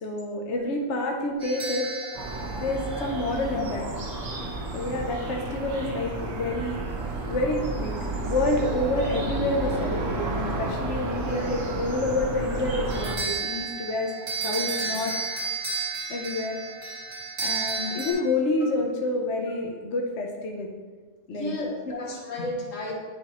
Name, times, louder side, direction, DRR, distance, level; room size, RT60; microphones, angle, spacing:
voice 1, 0.0-1.9 2.6-3.9 4.7-6.8 7.2-8.0 8.2-14.1 14.4-15.1 16.1-16.6 17.4-20.7 21.3-21.6, left 2 dB, 65° left, 1 dB, 1.0 m, -28 dB
sound 1, 1.4-3.7 12.9-18.1, right 4 dB, 70° right, 1.7 m, -32 dB
sound 2, 2.1-13.1, right 2 dB, 85° right, 1.4 m, -31 dB
voice 2, 14.4-14.7 17.0-17.1 21.3-22.9, left 2 dB, 90° left, -1 dB, 1.5 m, -34 dB
9.8 x 4.3 x 2.9 m, 1.4 s
omnidirectional pair, 1.3 m